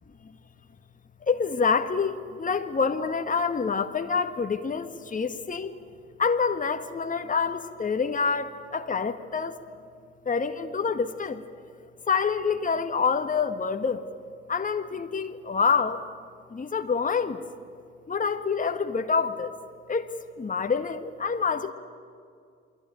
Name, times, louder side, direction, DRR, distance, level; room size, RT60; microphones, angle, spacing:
voice 1, 1.2-5.7 6.2-9.6 10.2-11.4 12.1-14.1 14.5-16.0 16.5-17.4 18.1-19.5 19.9-21.7, left 5 dB, 25° left, 7 dB, 1.7 m, -27 dB
28.5 x 22.0 x 9.4 m, 2.3 s
figure-of-eight pair, 45°, 30 cm